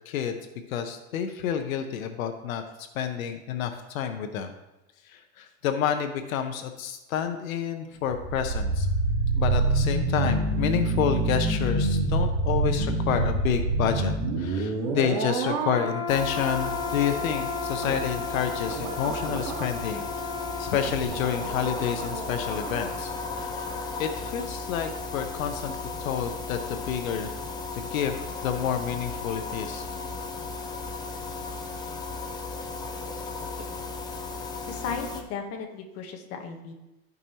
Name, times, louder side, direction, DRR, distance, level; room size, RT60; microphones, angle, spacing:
voice 1, 0.1-0.4 0.7-2.6 2.9-4.5 5.1-8.9 9.4-14.1 14.4-20.1 20.6-23.7 24.0-27.4 27.7-29.8, left 8 dB, 80° left, 6 dB, 1.0 m, -29 dB
sound 1, 8.0-23.0 23.2-23.4, right 2 dB, 55° right, 2.7 m, -28 dB
sound 2, 16.1-35.2, left 3 dB, 10° left, 0.4 m, -35 dB
voice 2, 34.7-36.7, left 6 dB, 35° left, 2 dB, 1.3 m, -35 dB
14.0 x 5.4 x 3.0 m, 1.0 s
supercardioid pair, 145°, 40 cm